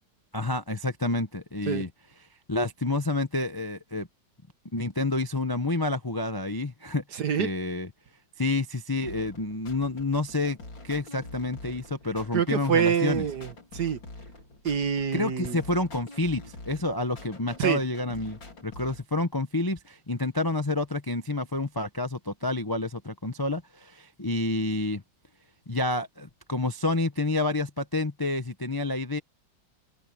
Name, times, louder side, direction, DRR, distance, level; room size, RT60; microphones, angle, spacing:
voice 1, 0.3-1.9 2.5-4.1 4.7-7.0 7.4-7.9 8.4-10.6 10.8-13.2 15.1-25.0 25.7-29.2, left 2 dB, 25° left, 0.5 m, -29 dB
voice 2, 7.1-7.5 12.3-14.0 14.6-15.6 17.6-17.8, right 7 dB, 60° right, 1.9 m, -26 dB
sound 1, 9.0-19.0, left 2 dB, 85° left, 4.9 m, -46 dB
open air
omnidirectional pair, 2.0 m